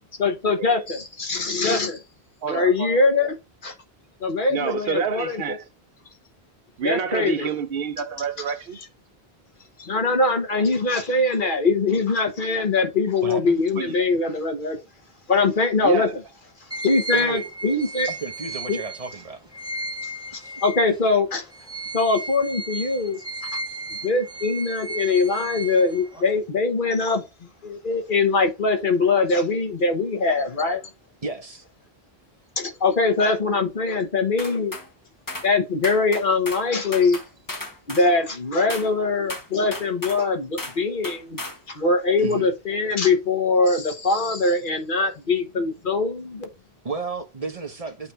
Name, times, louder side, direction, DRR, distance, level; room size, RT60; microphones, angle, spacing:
voice 1, 0.2-2.0 2.5-3.4 3.6-3.7 4.2-5.6 6.8-7.5 9.8-14.8 15.3-16.1 16.8-18.1 18.7-18.8 20.0-20.1 20.6-21.5 21.9-23.2 23.5-23.6 24.0-27.2 27.6-30.8 32.6-34.8 35.4-37.2 37.9-46.5, left 3 dB, 55° left, 1.3 m, -22 dB
voice 2, 2.4-3.0 4.5-5.6 6.8-8.8 13.8-13.9 15.8-16.1, right 6 dB, 70° right, 0.9 m, -28 dB
voice 3, 13.2-13.6 17.1-17.5 18.1-19.9 31.2-31.6 42.2-42.5 46.8-48.1, right 4 dB, 35° right, 1.1 m, -32 dB
sound 1, 16.7-21.1 21.5-26.4, right 2 dB, 5° right, 1.4 m, -34 dB
sound 2, 34.4-34.9 35.3-35.5 35.8-36.7 36.9-38.1 38.7-38.9 39.3-40.2 40.6-40.8 41.0-41.6, left 2 dB, 20° left, 0.9 m, -35 dB
8.6 x 3.3 x 4.4 m
omnidirectional pair, 1.1 m